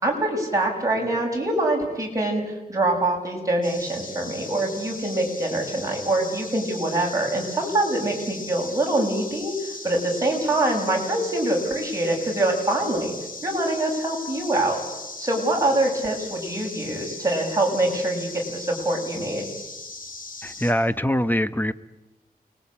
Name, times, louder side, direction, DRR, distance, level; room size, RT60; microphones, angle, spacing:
voice 1, 0.0-13.1 13.4-14.8 15.2-19.5, right 1 dB, 20° right, 0 dB, 7.2 m, -24 dB
sound 1, 3.6-20.7, left 3 dB, 60° left, 4.7 m, -38 dB
voice 2, 20.4-21.7, equal, 10° left, 12 dB, 0.9 m, -23 dB
29.0 x 20.5 x 8.7 m, 1.0 s
wide cardioid pair, 125°, 16 cm